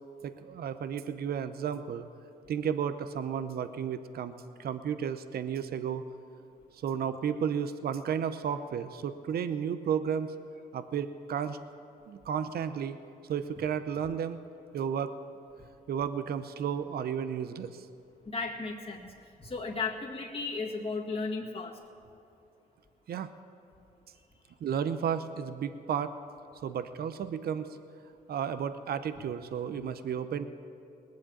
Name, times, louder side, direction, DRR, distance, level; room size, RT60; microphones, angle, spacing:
voice 1, 0.2-2.1 2.5-4.3 4.6-6.0 6.8-10.3 10.7-11.6 12.1-13.0 13.3-14.4 14.7-15.1 15.9-17.9 23.1-23.3 24.6-26.1 26.6-27.8 28.3-30.5, right 8 dB, 70° right, 11 dB, 0.7 m, -33 dB
voice 2, 18.3-19.1 19.4-21.8, left 4 dB, 35° left, -2 dB, 1.9 m, -35 dB
19.5 x 7.5 x 8.6 m, 2.6 s
cardioid pair, 65°, 16 cm